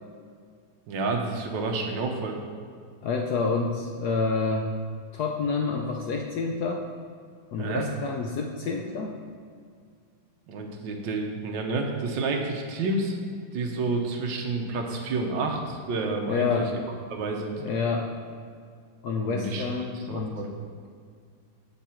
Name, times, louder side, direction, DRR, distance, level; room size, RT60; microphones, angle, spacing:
voice 1, 0.9-2.4 7.5-7.9 10.5-13.2 13.5-16.5 17.1-17.6 19.2-19.6 19.9-20.5, right 3 dB, 70° right, 2 dB, 1.5 m, -29 dB
voice 2, 3.0-4.7 5.1-6.8 7.5-9.2 16.3-16.7 17.6-18.1 19.0-20.4, left 4 dB, 70° left, 2 dB, 1.0 m, -28 dB
7.6 x 7.0 x 4.4 m, 2.1 s
omnidirectional pair, 2.1 m